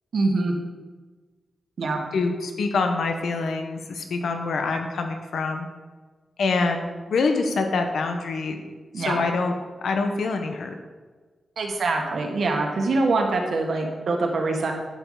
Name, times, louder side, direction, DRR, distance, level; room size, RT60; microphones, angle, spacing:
voice 1, 0.1-0.5 1.8-2.0 8.9-9.2 11.6-14.7, right 3 dB, 60° right, 2 dB, 1.6 m, -24 dB
voice 2, 2.1-5.7 6.4-8.6 9.0-9.5 9.8-10.7, left 4 dB, 80° left, 5 dB, 1.1 m, -25 dB
10.5 x 8.2 x 4.1 m, 1.4 s
wide cardioid pair, 175°, 0 cm